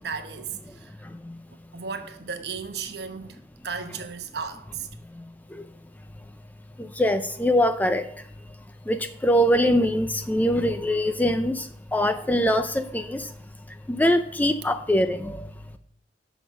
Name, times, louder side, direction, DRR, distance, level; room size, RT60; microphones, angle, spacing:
voice 1, 0.0-0.9 1.5-3.4 3.6-4.9, right 6 dB, 60° right, 1.0 m, -35 dB
voice 2, 6.8-8.1 8.9-13.3 13.9-15.5, equal, 10° left, 0.4 m, -23 dB
7.1 x 5.9 x 5.9 m
head